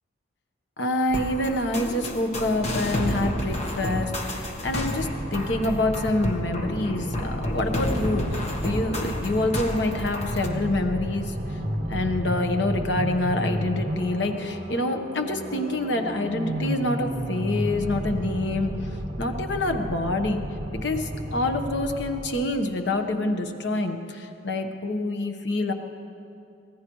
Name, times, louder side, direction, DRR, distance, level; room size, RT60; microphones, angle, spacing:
voice 1, 0.8-11.3 11.9-18.8 19.2-20.4 20.8-25.7, left 2 dB, 60° left, 5 dB, 1.2 m, -26 dB
sound 1, 1.1-10.5, left 1 dB, 35° left, 1.3 m, -31 dB
sound 2, 4.6-22.7, equal, 45° right, 1.7 m, -32 dB
25.0 x 17.0 x 3.2 m, 2.6 s
head